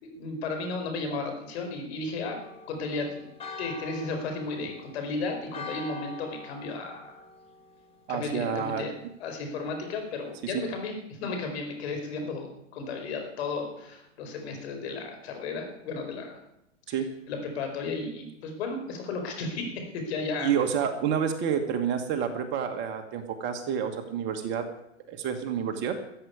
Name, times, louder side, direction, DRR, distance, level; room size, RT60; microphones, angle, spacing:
voice 1, 0.0-2.4 2.7-3.3 3.6-7.1 8.1-8.9 9.2-16.4 17.3-20.5, left 3 dB, 55° left, 4 dB, 4.8 m, -34 dB
Church bell, 2.4-8.1, left 2 dB, 15° left, 1.9 m, -44 dB
voice 2, 8.1-8.9 10.4-10.6 16.9-17.1 20.4-24.6 25.1-26.0, right 8 dB, 30° right, 6 dB, 1.5 m, -29 dB
14.0 x 8.0 x 9.3 m, 0.82 s
hypercardioid pair, 135°, 38 cm